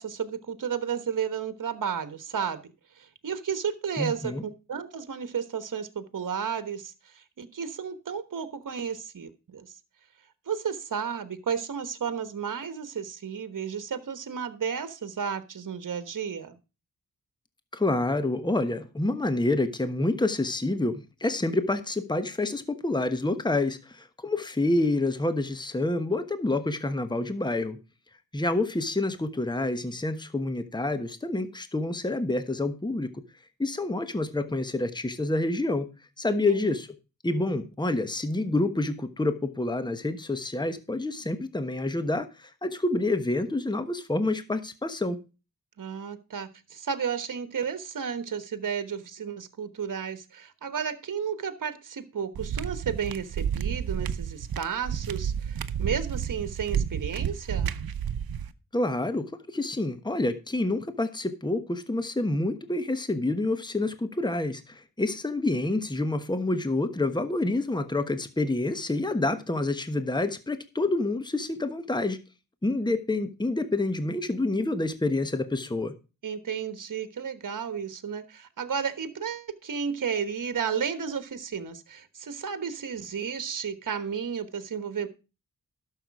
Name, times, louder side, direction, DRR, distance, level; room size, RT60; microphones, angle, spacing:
voice 1, 0.0-2.6 3.0-9.7 10.5-16.5 36.3-36.6 45.8-57.7 76.2-85.1, right 7 dB, 60° right, 12 dB, 1.3 m, -33 dB
voice 2, 4.0-4.4 17.7-27.8 28.3-33.1 33.6-35.9 36.2-36.9 37.2-45.2 58.7-72.2 72.6-75.9, left 2 dB, 10° left, 10 dB, 1.2 m, -28 dB
sound 1, 52.4-58.5, right 8 dB, 85° right, 0.8 m, -31 dB
11.5 x 6.8 x 4.7 m, 0.31 s
cardioid pair, 60°, 35 cm